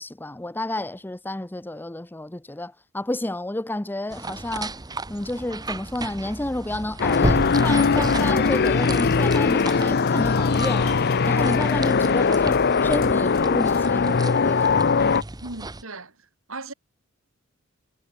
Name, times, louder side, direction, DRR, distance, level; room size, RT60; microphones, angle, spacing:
voice 1, 0.0-4.8 5.1-14.7, left 1 dB, 10° left, 0.6 m, -31 dB
sound 1, 4.1-15.8, right 2 dB, 20° right, 1.1 m, -33 dB
sound 2, 7.0-14.0 14.5-14.6, left 12 dB, 80° left, 4.3 m, -48 dB
sound 3, 7.0-15.2, left 5 dB, 50° left, 0.7 m, -20 dB
voice 2, 15.4-16.1 16.5-16.7, right 2 dB, 75° right, 5.7 m, -37 dB
head